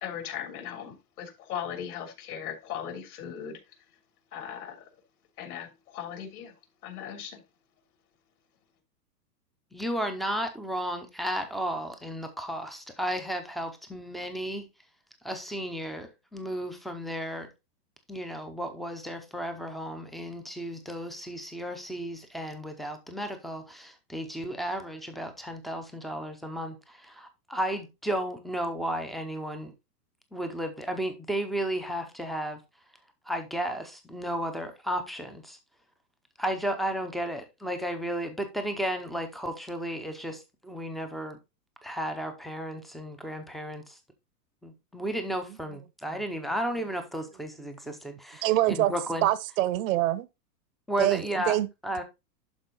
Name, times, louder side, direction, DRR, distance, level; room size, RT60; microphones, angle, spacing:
voice 1, 0.0-3.6 4.3-4.9 5.4-6.5 6.8-7.4, left 9 dB, 65° left, 3.2 m, -38 dB
voice 2, 9.7-14.7 15.2-17.5 18.1-29.7 30.3-32.6 33.3-35.6 36.4-41.4 41.8-44.0 44.6-49.3 50.9-51.6 51.8-52.0, equal, ahead, 0.5 m, -33 dB
voice 3, 48.4-48.9 49.2-50.3 51.0-51.7, right 15 dB, 55° right, 0.8 m, -25 dB
11.5 x 4.1 x 3.8 m
hypercardioid pair, 140°, 49 cm